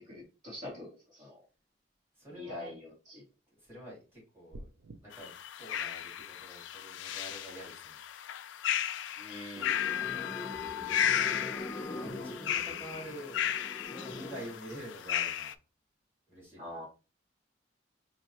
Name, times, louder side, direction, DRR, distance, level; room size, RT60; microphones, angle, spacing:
voice 1, 0.1-1.4 2.3-3.2 9.2-9.9 16.6-16.8, left 1 dB, 40° right, 2.1 m, -45 dB
voice 2, 2.2-2.7 3.5-4.7 5.0-8.0 11.9-15.5 16.3-16.8, equal, 15° right, 2.5 m, -47 dB
sound 1, 4.5-5.0, right 1 dB, 75° right, 0.5 m, -46 dB
sound 2, 5.1-15.5, left 10 dB, 75° left, 0.3 m, -35 dB
sound 3, 9.6-14.6, left 1 dB, 15° left, 0.6 m, -43 dB
5.3 x 2.7 x 2.9 m
head